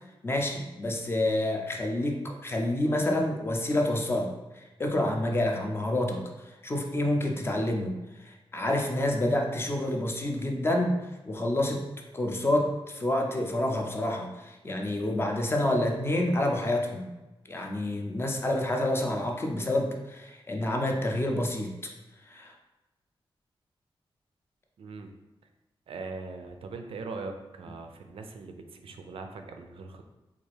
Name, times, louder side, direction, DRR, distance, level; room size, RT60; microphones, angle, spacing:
voice 1, 0.2-11.0 11.3-11.8 12.1-17.1 17.5-21.7 22.2-22.5, left 1 dB, 25° left, 2 dB, 0.4 m, -28 dB
voice 2, 24.8-25.1 25.9-30.0, right 3 dB, 75° right, 5 dB, 0.4 m, -40 dB
3.4 x 2.4 x 3.2 m, 1.1 s
wide cardioid pair, 175°, 10 cm